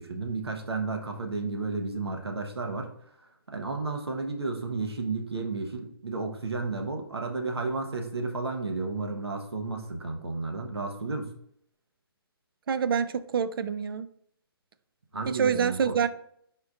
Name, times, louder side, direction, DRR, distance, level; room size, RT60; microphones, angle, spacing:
voice 1, 0.0-2.9 3.5-11.3 15.1-16.1, right 3 dB, 85° right, 3 dB, 1.0 m, -32 dB
voice 2, 12.7-14.1 15.3-16.1, right 7 dB, 65° right, 13 dB, 0.4 m, -26 dB
5.1 x 4.4 x 2.4 m, 0.69 s
figure-of-eight pair, 135°, 13 cm